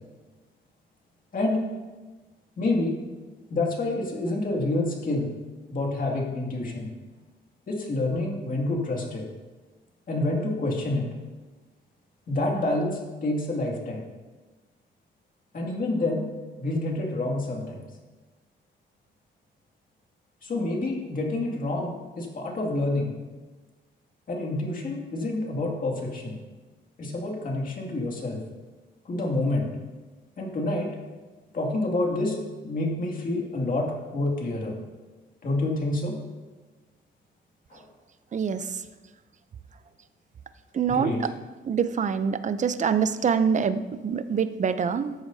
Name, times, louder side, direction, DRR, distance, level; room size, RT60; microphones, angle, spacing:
voice 1, 2.6-2.9 3.5-5.3 5.7-6.9 7.7-9.2 10.1-11.1 12.3-14.0 15.5-16.2 16.6-17.8 20.4-23.1 24.3-26.4 27.0-28.4 29.0-29.7 30.4-30.9 31.5-34.7 35.4-36.1 37.7-37.9 40.9-41.2, left 2 dB, 45° left, 0 dB, 2.3 m, -28 dB
voice 2, 38.3-38.6 40.7-41.1 41.6-45.1, right 6 dB, 40° right, 12 dB, 0.6 m, -25 dB
14.0 x 7.9 x 2.8 m, 1.2 s
cardioid pair, 90°, 20 cm